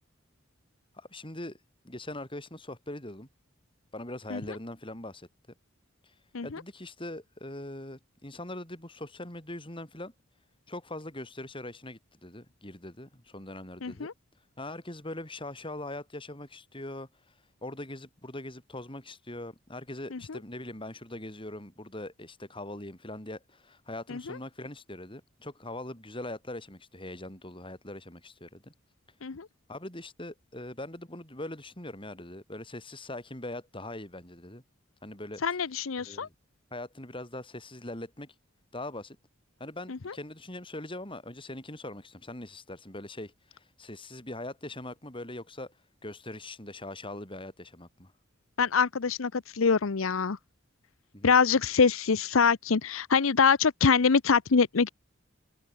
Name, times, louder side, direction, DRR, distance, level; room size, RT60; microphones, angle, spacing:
voice 1, 0.9-1.6 1.8-3.3 3.9-5.3 6.0-6.1 6.4-10.1 10.7-14.1 14.6-17.1 17.6-28.7 29.7-34.6 35.0-35.7 36.0-36.3 36.7-38.3 38.7-39.2 39.6-45.8 46.0-48.1 51.1-51.4, left 1 dB, 25° left, 6.9 m, -41 dB
voice 2, 13.8-14.1 24.1-24.2 29.2-29.5 35.4-36.3 48.6-50.4 51.2-54.9, left 5 dB, 85° left, 0.8 m, -24 dB
head